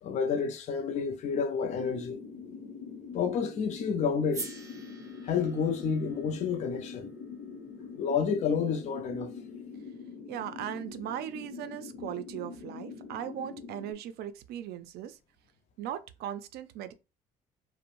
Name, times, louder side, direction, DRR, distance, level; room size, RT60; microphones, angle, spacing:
voice 1, 0.0-2.2 3.1-4.5 5.2-7.1 8.0-9.3, left 6 dB, 45° left, 0.4 m, -30 dB
sound 1, 1.6-13.9, left 5 dB, 70° left, 0.9 m, -44 dB
sound 2, 4.3-8.5, right 3 dB, 20° right, 0.6 m, -46 dB
voice 2, 10.3-15.2 15.8-16.9, right 11 dB, 70° right, 0.4 m, -38 dB
2.5 x 2.0 x 3.0 m
cardioid pair, 110°, 17 cm